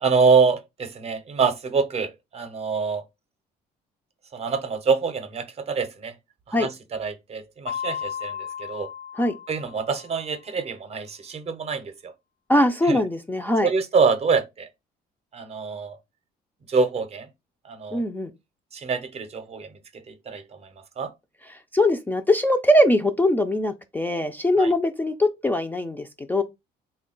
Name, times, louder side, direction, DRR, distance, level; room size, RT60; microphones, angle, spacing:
voice 1, 0.0-3.0 4.3-6.1 6.5-8.9 9.5-12.1 12.8-13.0 13.6-14.7 15.3-16.0 16.7-17.3 17.6-18.0 18.7-20.7 21.0-21.1 24.6-24.7, right 5 dB, 40° right, 0.6 m, -25 dB
Mallet percussion, 7.7-10.3, left 8 dB, 65° left, 0.6 m, -35 dB
voice 2, 12.5-13.7 17.9-18.3 21.7-26.4, left 1 dB, 10° left, 0.3 m, -21 dB
3.5 x 2.2 x 3.7 m
cardioid pair, 110°, 17 cm